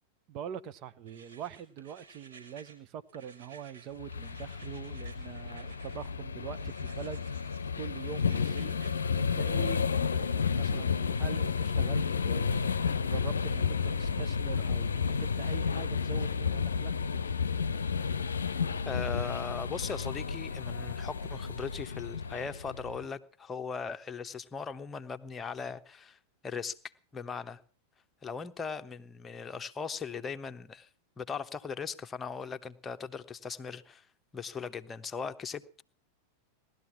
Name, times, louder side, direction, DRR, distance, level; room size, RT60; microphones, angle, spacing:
voice 1, 0.3-8.8 9.1-16.9, right 9 dB, 40° right, 1.0 m, -44 dB
sound 1, 1.1-2.8 3.1-6.1 6.5-7.6 7.9-8.9, right 4 dB, 70° right, 5.4 m, -55 dB
sound 2, 4.0-23.0, left 5 dB, 70° left, 0.7 m, -31 dB
voice 2, 18.8-26.2 26.4-26.8 27.1-27.6 28.2-30.9 31.2-34.1 34.3-35.8, left 5 dB, 20° left, 1.0 m, -39 dB
18.5 x 12.5 x 6.0 m
figure-of-eight pair, 90°, 0 cm